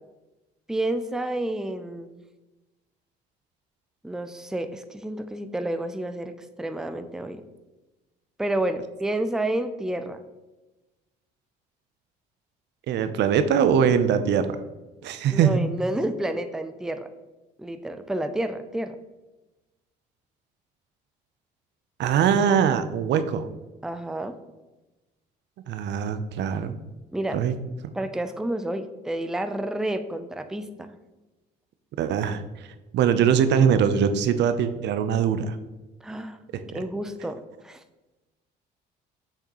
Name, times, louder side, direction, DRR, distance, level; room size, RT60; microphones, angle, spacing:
voice 1, 0.7-2.2 4.0-7.4 8.4-10.2 15.3-17.1 17.6-18.9 23.8-24.3 27.1-27.4 27.9-30.9 36.0-36.4 36.7-37.8, right 1 dB, 5° right, 9 dB, 0.5 m, -30 dB
voice 2, 12.9-14.5 15.0-15.6 22.0-23.5 25.7-26.7 27.3-27.5 32.0-32.4 32.9-35.6 36.5-36.8, right 7 dB, 65° right, 10 dB, 0.6 m, -22 dB
6.7 x 5.8 x 3.0 m, 1.1 s
supercardioid pair, 75°, 19 cm